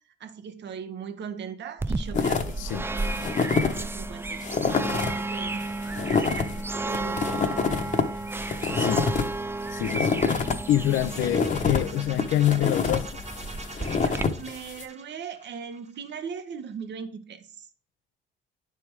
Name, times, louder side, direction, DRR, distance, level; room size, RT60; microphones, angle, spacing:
voice 1, 0.2-4.7 4.9-5.6 6.1-7.6 14.4-17.7, right 7 dB, 65° right, 0.9 m, -39 dB
sound 1, 1.8-14.2, right 2 dB, 10° right, 0.3 m, -33 dB
sound 2, 2.1-2.6 3.0-3.8 4.1-4.2 4.4-5.2 5.6-10.5 10.9-14.8, left 5 dB, 40° left, 0.9 m, -27 dB
voice 2, 2.6-2.9 8.7-9.1 9.7-10.3 10.7-13.1, left 12 dB, 80° left, 0.5 m, -26 dB
sound 3, 10.7-16.5, right 3 dB, 35° right, 1.0 m, -44 dB
9.6 x 3.4 x 4.6 m
cardioid pair, 90°, 20 cm